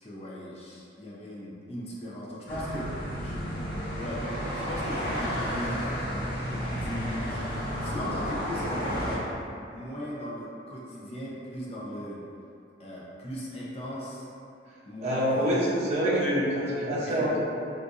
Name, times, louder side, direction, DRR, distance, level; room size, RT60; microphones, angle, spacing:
voice 1, 0.0-3.6 3.9-6.0 6.6-7.4 7.8-9.3 9.7-12.2 12.8-14.3 14.8-15.5 16.9-17.4, equal, 35° left, -6 dB, 0.6 m, -38 dB
sound 1, 2.5-9.2, equal, 60° left, 1.1 m, -32 dB
voice 2, 15.0-17.4, equal, 40° right, -9 dB, 0.6 m, -26 dB
4.2 x 2.5 x 2.5 m, 2.6 s
head